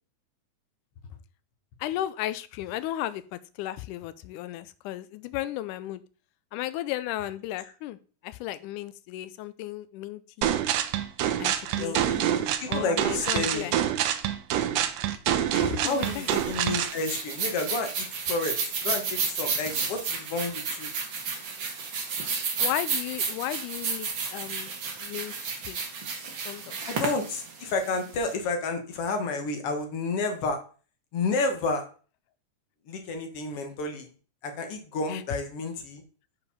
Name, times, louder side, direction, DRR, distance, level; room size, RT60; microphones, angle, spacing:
voice 1, 1.8-6.0 6.5-8.0 8.2-10.6 11.4-12.3 12.7-13.8 15.5-16.3 22.6-24.7 25.0-25.3 25.6-25.8 26.2-26.8 35.1-35.2, left 14 dB, 85° left, 15 dB, 2.1 m, -35 dB
sound 1, 10.4-17.0, right 10 dB, 80° right, 1.5 m, -26 dB
voice 2, 12.6-13.7 15.8-18.6 18.8-20.9 22.6-22.7 26.9-30.6 31.1-31.9 32.9-34.1 34.4-36.0, left 3 dB, 55° left, 5 dB, 1.9 m, -30 dB
sound 2, 15.9-28.3, right 5 dB, 50° right, 1.8 m, -32 dB
6.6 x 5.0 x 5.6 m, 0.38 s
omnidirectional pair, 3.6 m